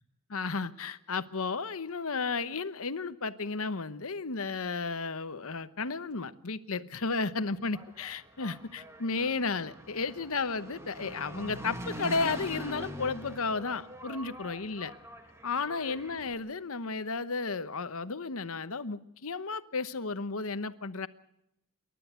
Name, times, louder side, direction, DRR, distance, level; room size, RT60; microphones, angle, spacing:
voice 1, 0.3-14.9 15.4-21.1, left 4 dB, 70° left, 13 dB, 1.0 m, -33 dB
Engine, 7.5-16.3, equal, 10° right, 2.0 m, -43 dB
28.0 x 12.5 x 8.1 m, 0.84 s
head